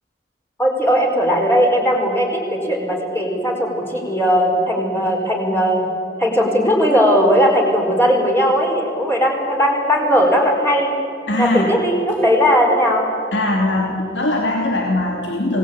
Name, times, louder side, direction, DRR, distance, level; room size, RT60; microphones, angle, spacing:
voice 1, 0.6-5.8 6.2-10.9 11.4-13.0, equal, 15° left, -1 dB, 5.1 m, -17 dB
voice 2, 11.3-11.7 13.3-15.6, left 1 dB, 85° left, 0 dB, 2.9 m, -20 dB
26.5 x 19.0 x 9.0 m, 2.6 s
head